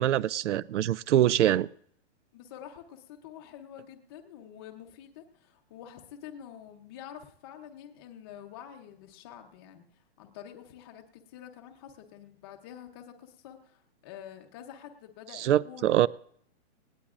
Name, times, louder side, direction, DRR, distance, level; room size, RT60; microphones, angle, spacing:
voice 1, 0.0-1.7 15.4-16.1, right 12 dB, 80° right, 0.5 m, -24 dB
voice 2, 2.3-9.9 10.2-16.1, left 10 dB, 20° left, 0.7 m, -47 dB
19.0 x 17.5 x 2.4 m
hypercardioid pair, 165°, 35 cm